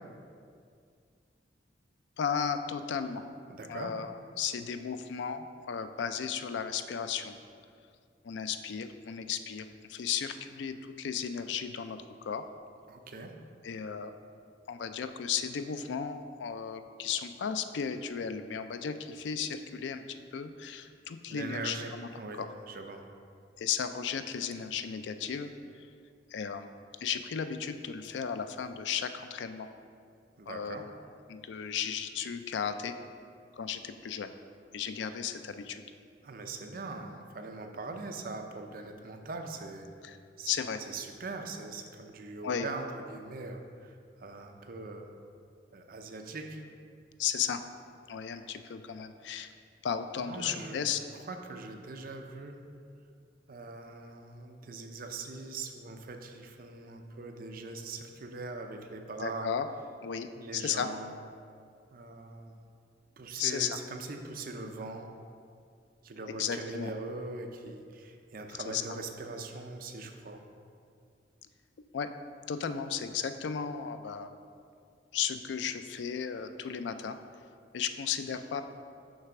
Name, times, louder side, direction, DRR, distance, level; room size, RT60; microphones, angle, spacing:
voice 1, 2.2-3.2 3.7-7.4 8.2-12.4 13.6-14.1 14.7-22.1 22.4-22.5 23.6-25.5 25.7-25.9 26.3-26.7 27.0-29.7 30.5-31.0 31.3-32.9 33.5-34.3 34.7-35.8 40.0-40.2 40.5-40.8 42.4-42.7 47.2-47.6 48.1-49.5 49.8-51.0 59.2-59.7 60.0-60.9 63.4-63.8 66.4-66.9 68.6-68.8 71.9-72.1 72.5-74.4 75.1-77.2 77.7-78.6, left 7 dB, 75° left, 9 dB, 0.4 m, -35 dB
voice 2, 3.5-3.9 12.9-13.3 21.3-22.4 22.7-23.1 30.4-30.9 36.2-39.9 40.4-40.5 40.8-45.1 45.7-46.7 50.2-50.8 51.1-52.6 53.5-59.5 60.4-61.1 61.9-62.6 63.2-65.1 66.0-70.5, right 3 dB, 50° right, 4 dB, 0.6 m, -41 dB
6.5 x 3.3 x 5.9 m, 2.3 s
head